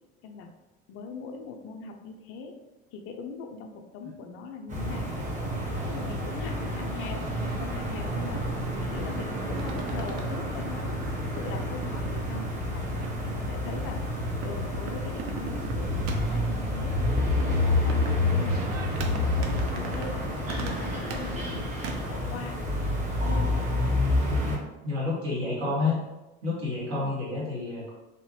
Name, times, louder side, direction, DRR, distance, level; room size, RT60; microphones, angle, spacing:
voice 1, 0.9-2.5 2.9-5.2 5.7-8.4 8.8-11.0 11.4-12.8 13.2-14.0 14.4-18.7 19.0-20.2 20.6-21.7 22.1-22.6 23.2-23.5 25.5-25.7 27.0-27.1, left 4 dB, 45° left, 4 dB, 0.5 m, -40 dB
sound 1, 4.7-24.6, left 1 dB, 20° right, 1.0 m, -29 dB
sound 2, 9.6-22.0, right 5 dB, 45° right, 0.5 m, -41 dB
voice 2, 24.8-26.0 26.4-27.9, left 3 dB, 70° right, -6 dB, 1.5 m, -29 dB
2.8 x 2.7 x 2.9 m, 1.0 s
figure-of-eight pair, 65°, 33 cm